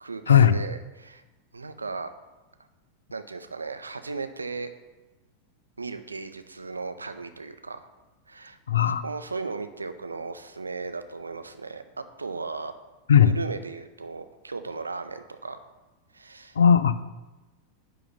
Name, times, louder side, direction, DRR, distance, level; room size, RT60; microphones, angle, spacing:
voice 1, 0.0-1.2 1.5-2.1 3.1-4.7 5.8-7.9 8.3-8.6 8.8-12.7 13.2-15.6 16.1-16.6, right 4 dB, 80° right, 9 dB, 0.6 m, -36 dB
voice 2, 8.7-9.0 13.1-13.3 16.6-17.0, left 8 dB, 65° left, 14 dB, 0.4 m, -17 dB
10.5 x 3.8 x 6.8 m, 1.1 s
figure-of-eight pair, 90°, 0 cm